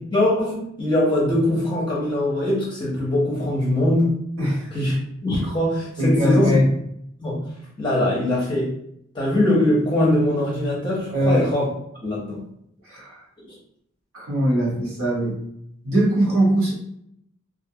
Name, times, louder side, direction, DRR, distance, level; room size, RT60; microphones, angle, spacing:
voice 1, 0.1-4.2 4.7-5.0 5.2-6.6 7.2-8.8 9.1-11.7 12.0-12.5 13.4-13.6, left 1 dB, 20° left, -5 dB, 0.6 m, -22 dB
voice 2, 4.4-4.7 6.0-6.7 11.1-11.4 12.8-13.2 14.1-15.4 15.8-16.7, equal, 80° right, -5 dB, 1.2 m, -20 dB
2.5 x 2.2 x 2.7 m, 0.74 s
head